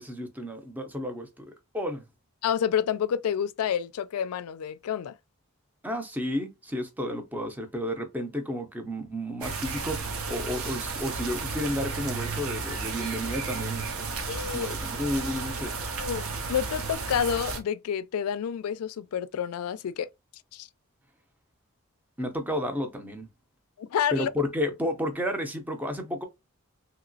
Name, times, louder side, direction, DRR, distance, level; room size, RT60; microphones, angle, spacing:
voice 1, 0.0-1.5 1.7-2.1 5.8-15.7 22.2-23.3 24.1-26.3, left 1 dB, 10° right, 0.5 m, -32 dB
voice 2, 2.4-5.1 14.3-14.7 16.0-20.1 20.5-20.7 23.8-24.3, left 8 dB, 85° left, 0.3 m, -29 dB
sound 1, 9.4-17.6, right 4 dB, 75° right, 0.6 m, -33 dB
2.9 x 2.9 x 2.6 m
head